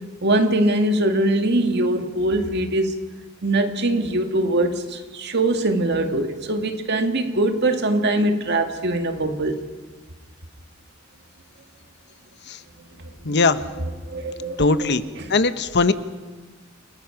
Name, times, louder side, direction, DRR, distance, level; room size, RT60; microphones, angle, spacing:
voice 1, 0.2-3.0 3.4-9.6 13.2-13.4 14.0-14.7 15.2-15.3, right 1 dB, 55° right, 6 dB, 2.1 m, -22 dB
voice 2, 13.2-13.6 14.6-15.0 15.3-15.9, left 3 dB, 55° left, 12 dB, 1.0 m, -19 dB
29.0 x 19.5 x 5.9 m, 1.4 s
head